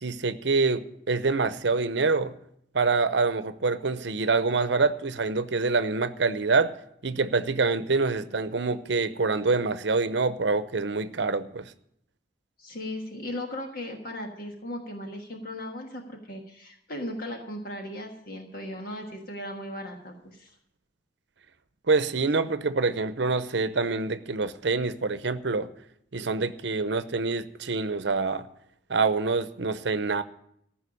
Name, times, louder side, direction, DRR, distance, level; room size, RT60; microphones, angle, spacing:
voice 1, 0.0-2.3 2.7-6.7 7.0-11.7 21.9-25.7 26.1-28.5 28.9-30.2, right 4 dB, 70° right, 13 dB, 0.7 m, -26 dB
voice 2, 12.6-20.5, left 1 dB, 55° left, 2 dB, 1.5 m, -37 dB
14.5 x 5.8 x 9.8 m, 0.71 s
head